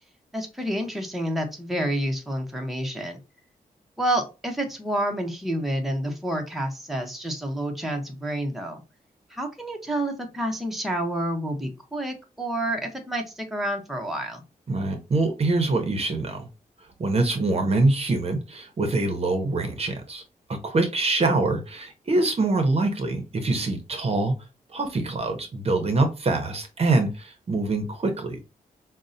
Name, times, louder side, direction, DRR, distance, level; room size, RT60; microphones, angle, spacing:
voice 1, 0.3-3.2 4.0-8.8 9.3-14.4, right 1 dB, ahead, 2 dB, 0.7 m, -29 dB
voice 2, 14.7-16.5 17.0-20.2 20.5-24.4 24.7-28.5, right 2 dB, 45° right, 6 dB, 0.7 m, -24 dB
5.1 x 2.1 x 2.5 m, 0.29 s
wide cardioid pair, 105°, 15 cm